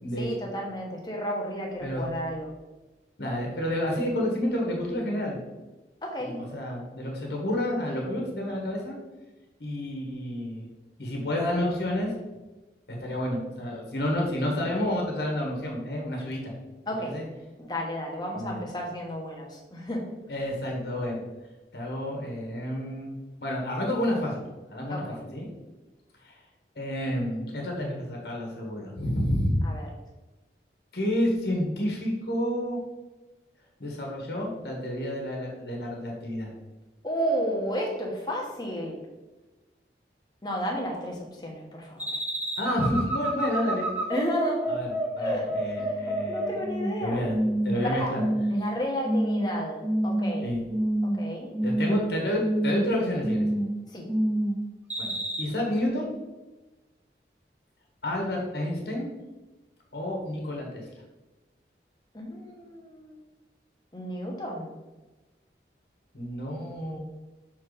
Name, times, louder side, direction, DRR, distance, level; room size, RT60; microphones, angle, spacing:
voice 1, 0.2-2.5 6.0-6.4 16.9-17.2 17.6-20.0 24.9-25.2 29.6-29.9 37.0-39.0 40.4-42.1 44.1-44.7 45.2-45.5 45.8-47.2 47.8-48.1 48.5-50.5 51.0-51.5 53.9-54.1 62.1-63.2 63.9-64.7, equal, 25° left, -1 dB, 1.2 m, -32 dB
voice 2, 3.2-5.4 6.2-9.0 9.6-10.7 11.0-12.1 12.9-16.5 16.9-17.2 18.3-18.6 20.3-21.2 21.7-23.1 23.4-24.4 24.7-25.0 25.3-25.4 26.2-26.4 26.7-29.6 30.9-32.8 33.8-36.5 42.6-43.9 44.7-44.9 45.1-46.6 47.0-47.4 47.6-48.2 50.4-50.6 51.6-53.5 55.0-56.1 58.0-59.1 59.9-60.9 66.1-67.0, left 1 dB, 70° left, -1 dB, 1.5 m, -30 dB
sound 1, 42.0-47.0 47.3-47.8 48.1-48.7 49.0-49.5 49.8-50.4 50.7-51.2 51.5-52.0 52.4-52.8 53.2-53.7 54.1-54.5 54.9-55.4, right 1 dB, 10° right, 0.9 m, -27 dB
6.6 x 4.1 x 4.1 m, 1.1 s
head